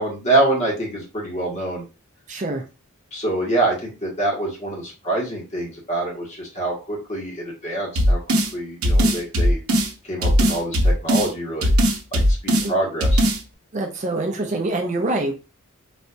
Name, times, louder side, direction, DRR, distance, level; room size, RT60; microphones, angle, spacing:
voice 1, 0.0-1.8 3.1-8.2 8.5-9.6 10.0-11.7 12.1-13.3, right 2 dB, 30° left, -2 dB, 1.3 m, -25 dB
voice 2, 2.3-2.6 12.6-12.7 13.7-15.3, right 2 dB, 35° right, 3 dB, 0.5 m, -25 dB
sound 1, 8.0-8.5 8.8-9.9 10.2-11.3 11.6-12.7 13.0-13.4, equal, 75° right, 0.7 m, -18 dB
4.0 x 2.7 x 2.2 m, 0.30 s
head